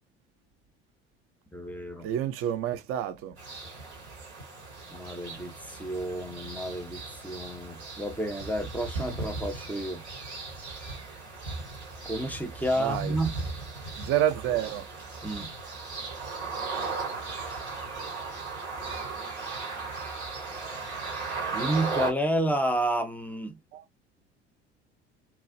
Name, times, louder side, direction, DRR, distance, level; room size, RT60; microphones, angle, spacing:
voice 1, 1.5-2.1 4.9-10.0 12.0-13.4 15.2-15.5 21.5-23.6, right 1 dB, 5° left, 0.7 m, -30 dB
voice 2, 2.0-3.3 12.8-13.2 14.0-14.8 23.7-23.8, right 11 dB, 45° right, 0.6 m, -28 dB
sound 1, 3.4-22.1, right 4 dB, 80° right, 1.3 m, -37 dB
3.0 x 2.4 x 2.5 m
figure-of-eight pair, 65°, 33 cm